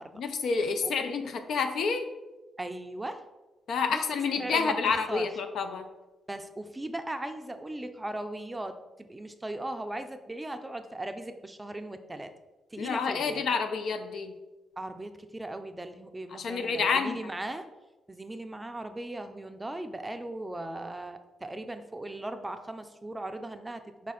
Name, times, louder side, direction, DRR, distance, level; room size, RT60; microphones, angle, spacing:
voice 1, 0.1-2.1 3.7-5.8 12.8-14.3 16.3-17.2, left 5 dB, 75° left, 7 dB, 0.4 m, -29 dB
voice 2, 2.6-3.2 3.9-4.0 4.3-4.7 5.1-5.2 6.3-12.3 12.7-13.4 14.8-17.7 18.1-24.1, right 1 dB, 15° right, 8 dB, 0.4 m, -38 dB
4.9 x 2.4 x 4.1 m, 1.1 s
cardioid pair, 65°, 0 cm